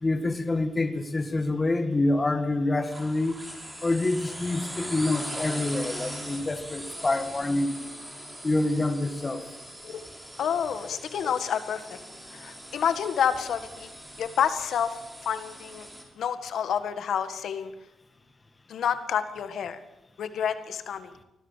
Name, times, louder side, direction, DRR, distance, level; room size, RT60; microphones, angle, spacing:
voice 1, 0.0-3.4 3.8-7.8 8.4-9.4, left 2 dB, 20° left, 7 dB, 1.9 m, -26 dB
sound 1, 2.8-16.0, equal, 10° right, 4.9 m, -41 dB
voice 2, 10.4-12.0 12.3-13.9 14.2-15.9 16.2-17.7 18.7-19.8 20.2-21.1, left 8 dB, 65° left, 10 dB, 1.7 m, -29 dB
24.5 x 17.0 x 7.5 m, 0.91 s
wide cardioid pair, 150°, 0 cm